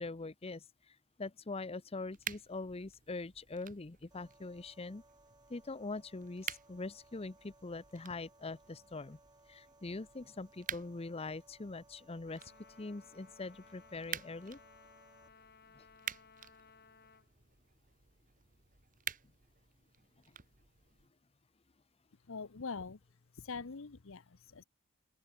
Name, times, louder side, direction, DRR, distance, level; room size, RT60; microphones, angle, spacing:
voice 1, 0.0-5.0 5.5-9.2 9.5-12.5 12.8-14.6 15.8-15.9, left 3 dB, 30° left, 0.7 m, -43 dB
sound 1, 2.1-21.1, right 8 dB, 40° right, 1.6 m, -50 dB
sound 2, 4.1-15.3, right 2 dB, 20° right, 2.7 m, -65 dB
Trumpet, 12.3-17.3, left 5 dB, 50° left, 5.9 m, -61 dB
voice 2, 22.3-23.0 23.3-24.6, left 4 dB, 65° left, 0.9 m, -43 dB
open air
head